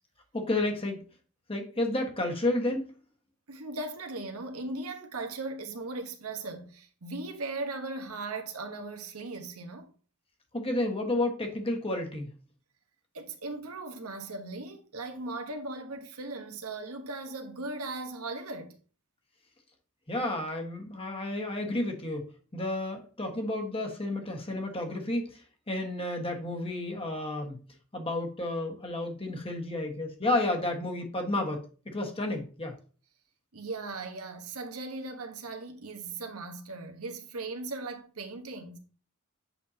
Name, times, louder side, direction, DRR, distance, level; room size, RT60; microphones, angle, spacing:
voice 1, 0.3-1.0 1.5-2.9 10.5-12.3 20.1-22.3 22.5-25.4 25.7-27.6 27.9-32.7, left 1 dB, 25° left, 1.5 m, -31 dB
voice 2, 3.5-9.9 13.1-18.8 33.5-38.8, right 3 dB, 85° right, 1.2 m, -38 dB
8.3 x 5.7 x 2.8 m
head